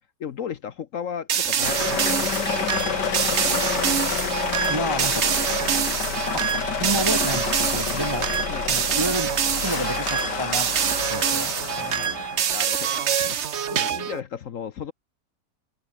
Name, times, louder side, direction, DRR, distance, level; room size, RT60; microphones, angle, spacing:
voice 1, 0.2-2.6 3.2-4.2 8.5-8.8 11.2-14.9, left 8 dB, 55° left, 1.1 m, -36 dB
sound 1, 1.3-14.2, right 8 dB, 50° right, 1.0 m, -25 dB
sound 2, 1.6-12.5, left 8 dB, 75° left, 2.1 m, -29 dB
voice 2, 4.7-5.3 6.8-8.3 8.7-12.2, right 1 dB, 20° right, 0.8 m, -30 dB
open air
omnidirectional pair, 1.9 m